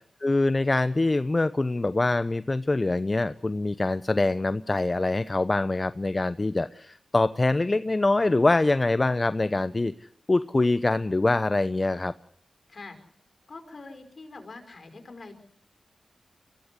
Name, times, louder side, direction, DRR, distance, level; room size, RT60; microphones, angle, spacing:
voice 1, 0.2-12.1, left 2 dB, 35° left, 14 dB, 0.8 m, -24 dB
voice 2, 13.5-15.4, left 3 dB, 55° left, 7 dB, 5.1 m, -44 dB
23.5 x 16.0 x 8.4 m, 0.64 s
cardioid pair, 45°, 0 cm